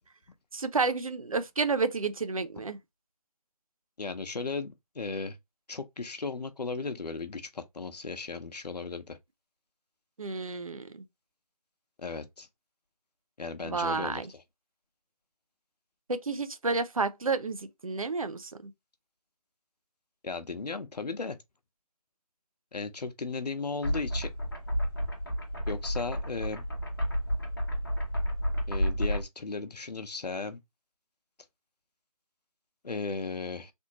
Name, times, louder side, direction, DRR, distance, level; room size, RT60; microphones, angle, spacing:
voice 1, 0.5-2.8 10.2-10.8 13.6-14.3 16.1-18.5, right 4 dB, 60° right, 0.6 m, -30 dB
voice 2, 4.0-5.4 5.7-9.2 12.0-12.5 13.4-14.4 20.2-21.4 22.7-24.3 25.7-26.6 28.7-30.6 32.8-33.7, left 4 dB, 90° left, 0.8 m, -36 dB
sound 1, 23.8-29.2, equal, 35° left, 1.0 m, -31 dB
3.5 x 2.6 x 2.9 m
figure-of-eight pair, 175°, 20 cm